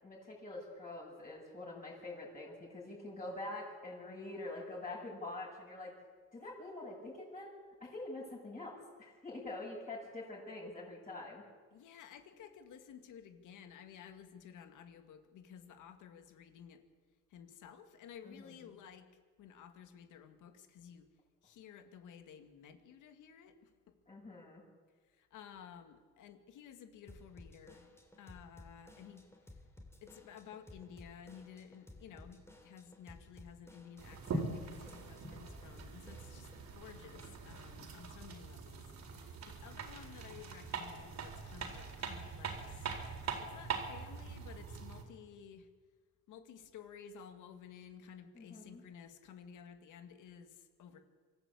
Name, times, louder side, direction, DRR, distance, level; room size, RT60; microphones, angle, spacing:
voice 1, 0.0-5.9 6.3-7.5 7.8-11.4 18.2-18.5 24.1-24.6 48.3-48.8, left 2 dB, 25° left, -6 dB, 7.4 m, -45 dB
voice 2, 11.7-16.8 17.3-19.1 19.4-21.1 21.4-23.9 25.2-27.9 28.2-29.2 30.0-42.9 43.4-45.7 46.3-51.0, left 8 dB, 85° left, 7 dB, 2.2 m, -54 dB
Drum kit / Drum, 27.1-36.7, left 1 dB, 10° left, 3.2 m, -57 dB
sound 1, 34.0-45.0, right 4 dB, 65° right, 4.0 m, -43 dB
25.0 x 14.0 x 8.5 m, 1.5 s
cardioid pair, 90°, 30 cm